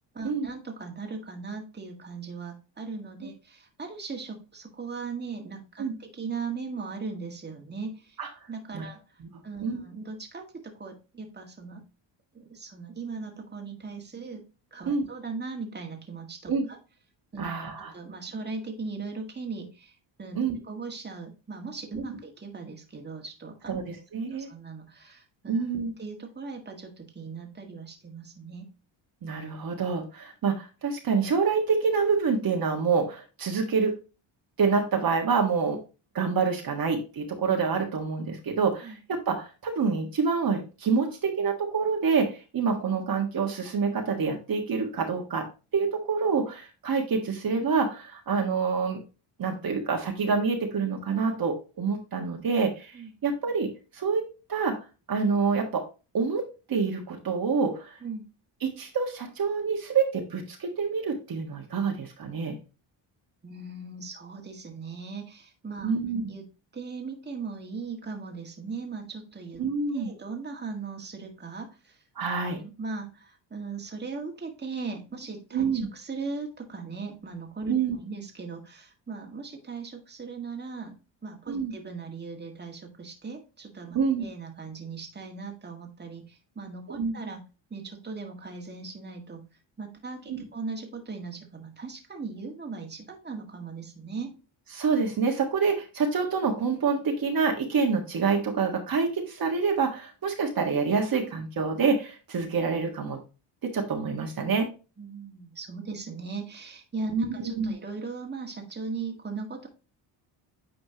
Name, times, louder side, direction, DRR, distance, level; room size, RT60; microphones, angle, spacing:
voice 1, 0.1-8.2 8.5-11.8 12.3-14.4 14.7-16.8 17.3-17.5 17.9-20.4 20.6-23.8 24.3-25.6 26.0-28.7 38.8-39.0 52.9-53.1 58.0-58.3 63.4-65.9 66.3-66.5 66.7-69.6 69.9-72.0 72.6-81.0 81.2-87.4 87.7-89.5 89.8-94.4 105.0-109.7, right 4 dB, 20° right, 2 dB, 1.8 m, -38 dB
voice 2, 17.4-17.9 20.3-20.6 23.7-24.5 25.5-25.9 29.2-33.9 34.6-35.8 36.1-45.4 45.7-49.0 49.4-54.8 55.1-55.8 56.1-58.0 58.6-62.6 65.8-66.3 69.6-70.1 72.1-72.6 75.5-75.9 77.7-77.9 81.5-81.7 83.9-84.3 86.9-87.2 90.3-90.4 94.7-103.2 103.6-104.7 107.1-107.3 107.5-107.7, right 5 dB, 45° right, 2 dB, 1.6 m, -27 dB
9.2 x 4.3 x 2.9 m, 0.31 s
cardioid pair, 100°, 47 cm